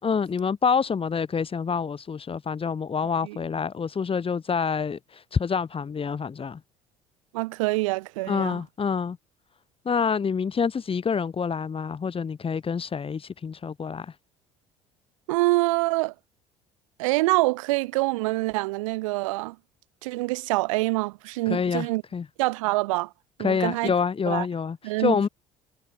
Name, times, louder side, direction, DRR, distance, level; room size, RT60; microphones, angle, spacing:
voice 1, 0.0-6.6 8.3-9.2 9.8-14.1 21.5-22.2 23.4-25.3, left 6 dB, 35° left, 6.7 m, -27 dB
voice 2, 7.3-8.6 15.3-16.1 17.0-19.5 20.0-22.0 22.4-23.1 23.4-23.9 24.3-24.5 24.8-25.3, right 22 dB, 70° right, 4.9 m, -25 dB
figure-of-eight pair, 60°, 17 cm